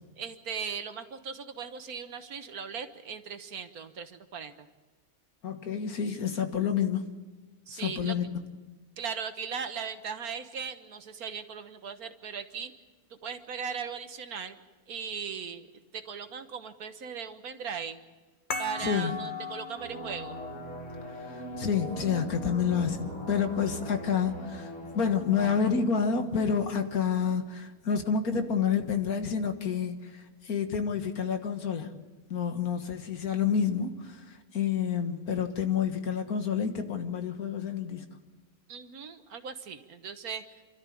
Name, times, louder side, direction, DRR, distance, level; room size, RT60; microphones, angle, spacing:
voice 1, 0.2-4.7 7.7-8.1 9.0-12.7 13.1-14.6 14.9-15.7 15.9-18.0 18.6-20.4 38.7-40.6, right 6 dB, 85° right, 8 dB, 1.7 m, -38 dB
voice 2, 5.4-7.1 7.7-8.3 18.8-19.1 21.3-31.9 32.3-34.2 34.5-38.1, left 7 dB, 85° left, 7 dB, 2.0 m, -29 dB
sound 1, 18.5-23.6, left 3 dB, 35° left, 1.4 m, -41 dB
sound 2, 19.8-27.1, equal, 70° left, 3.6 m, -41 dB
29.0 x 13.0 x 8.5 m, 1.2 s
omnidirectional pair, 1.5 m